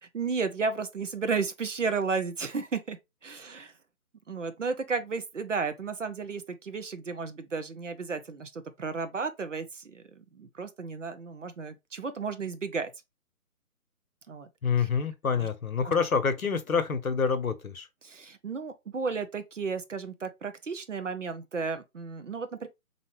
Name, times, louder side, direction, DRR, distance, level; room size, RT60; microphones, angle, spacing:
voice 1, 0.1-3.0 3.2-3.7 4.3-12.9 14.3-14.5 14.8-14.9 15.4-15.5 15.8-15.9 18.0-22.7, right 5 dB, 55° right, 0.7 m, -33 dB
voice 2, 14.6-17.9, left 5 dB, 65° left, 0.8 m, -27 dB
4.2 x 2.8 x 3.0 m
figure-of-eight pair, 145°, 45 cm